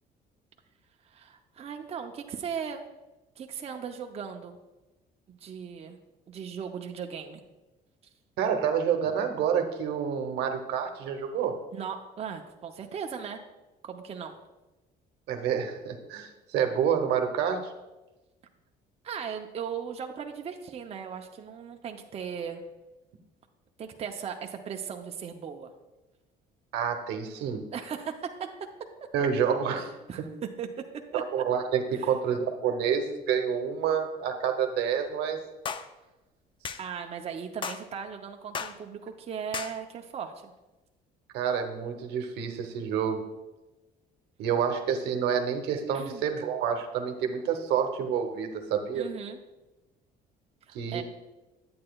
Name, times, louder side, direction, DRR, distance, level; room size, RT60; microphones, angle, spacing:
voice 1, 1.0-2.8 3.4-4.6 5.3-6.0 6.3-7.4 11.7-13.4 13.8-14.4 19.0-22.6 23.8-25.7 27.7-28.3 30.1-30.7 31.1-31.2 32.0-32.1 36.8-40.5 45.9-46.2 48.9-49.4 50.7-51.0, right 7 dB, 35° right, 4 dB, 0.6 m, -37 dB
voice 2, 8.4-11.6 15.3-17.7 26.7-27.6 29.1-29.9 31.1-35.4 41.3-43.2 44.4-49.1 50.7-51.0, right 7 dB, 85° right, 5 dB, 0.9 m, -28 dB
sound 1, 35.7-35.9 36.6-36.8 37.6-37.8 38.5-38.8 39.5-39.8, left 6 dB, 30° left, 0.4 m, -34 dB
8.6 x 8.5 x 2.3 m, 1.1 s
cardioid pair, 110°, 17 cm